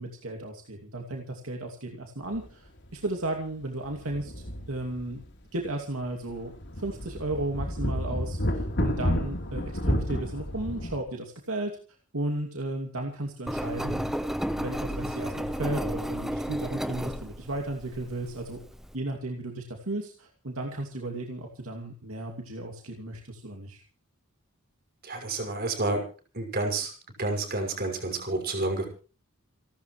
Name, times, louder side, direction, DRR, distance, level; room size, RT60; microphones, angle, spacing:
voice 1, 0.0-5.2 5.5-11.8 12.1-14.1 14.6-18.6 18.9-23.8, right 2 dB, 70° right, 2 dB, 2.7 m, -34 dB
sound 1, 2.3-2.5 2.8-2.9 3.8-5.3 5.6-5.7 6.3-11.0, equal, 50° left, 3.8 m, -31 dB
Engine, 13.5-18.9, equal, ahead, 0.9 m, -33 dB
voice 2, 25.0-26.0 26.3-26.9 27.2-28.9, right 2 dB, 45° right, 3 dB, 6.0 m, -29 dB
29.0 x 13.0 x 3.3 m, 0.37 s
head